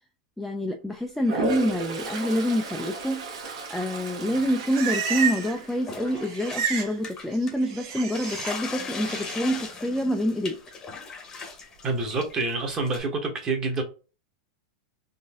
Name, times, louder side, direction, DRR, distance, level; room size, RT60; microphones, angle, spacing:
voice 1, 0.4-3.2 3.7-10.6, equal, ahead, 0.3 m, -27 dB
Toilet flush, 1.2-6.4 6.8-7.2 11.6-11.7 12.0-12.7, right 3 dB, 75° right, 1.4 m, -34 dB
Livestock farm animals working animals, 4.2-5.6 5.9-6.9 7.2-8.5 9.0-9.4, right 7 dB, 50° right, 0.9 m, -31 dB
sound 1, 5.4-7.6 7.9-13.0, left 4 dB, 15° left, 0.8 m, -39 dB
voice 2, 11.8-13.8, right 3 dB, 20° right, 1.0 m, -27 dB
3.8 x 2.6 x 3.5 m
supercardioid pair, 165°, 3 cm